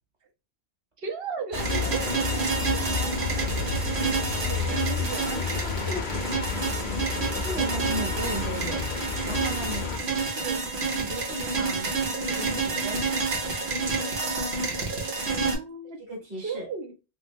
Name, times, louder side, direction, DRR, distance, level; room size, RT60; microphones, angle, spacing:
voice 1, 1.0-3.8 4.4-6.4 15.5-16.0 16.4-16.9, right 4 dB, 70° right, 4 dB, 1.0 m, -37 dB
sound 1, 1.5-10.0, left 5 dB, 55° left, 0.7 m, -31 dB
sound 2, 1.5-15.6, right 4 dB, 85° right, 1.3 m, -29 dB
voice 2, 7.4-9.0 9.2-13.1 16.1-16.6, right 2 dB, 50° right, -2 dB, 1.5 m, -36 dB
3.2 x 2.7 x 2.6 m, 0.27 s
omnidirectional pair, 1.1 m